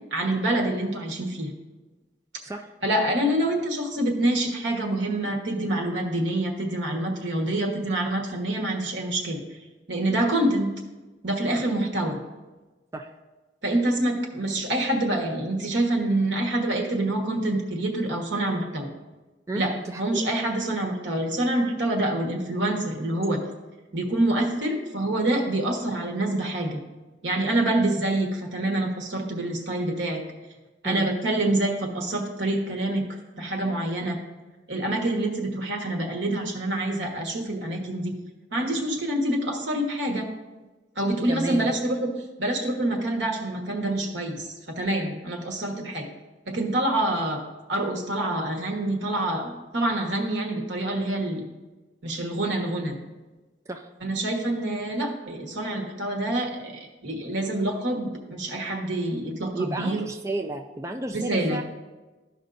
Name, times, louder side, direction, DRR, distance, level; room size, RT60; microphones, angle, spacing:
voice 1, 0.1-1.5 2.8-9.4 9.9-10.7 11.2-12.2 13.6-18.9 19.5-23.4 23.9-26.8 27.2-30.2 30.8-33.0 33.4-34.2 34.7-38.1 38.5-40.3 41.0-42.1 42.4-46.1 46.5-47.4 47.7-51.4 52.0-52.9 54.0-60.0 61.1-61.6, right 1 dB, 75° right, 1 dB, 1.3 m, -26 dB
voice 2, 19.5-20.3 30.8-31.1 41.3-41.7 53.7-53.9 59.5-61.6, right 2 dB, 15° right, 3 dB, 0.4 m, -32 dB
13.5 x 5.4 x 2.6 m, 1.2 s
head